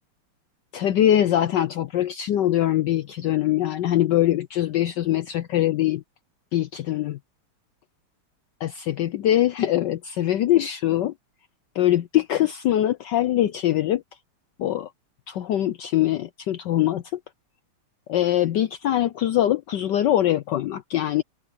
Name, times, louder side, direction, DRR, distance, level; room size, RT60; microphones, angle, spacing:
voice 1, 0.7-6.0 6.5-7.2 8.6-11.1 11.8-14.0 14.6-14.9 15.3-17.0 18.1-21.2, left 12 dB, 70° left, 1.1 m, -22 dB
omnidirectional pair, 2.4 m